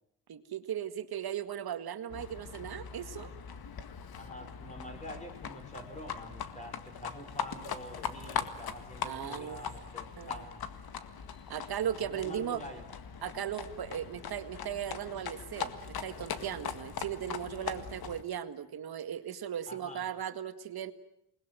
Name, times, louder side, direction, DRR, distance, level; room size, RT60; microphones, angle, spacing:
voice 1, 0.3-3.3 9.0-9.6 10.2-10.3 11.5-12.6 13.2-20.9, right 9 dB, 60° right, 9 dB, 1.9 m, -37 dB
Livestock farm animals working animals, 2.1-18.2, left 7 dB, 60° left, 1.9 m, -41 dB
voice 2, 4.1-10.6 12.0-12.9 19.7-20.1, equal, 15° left, 4 dB, 5.6 m, -46 dB
28.0 x 20.5 x 9.2 m, 0.79 s
cardioid pair, 145°, 42 cm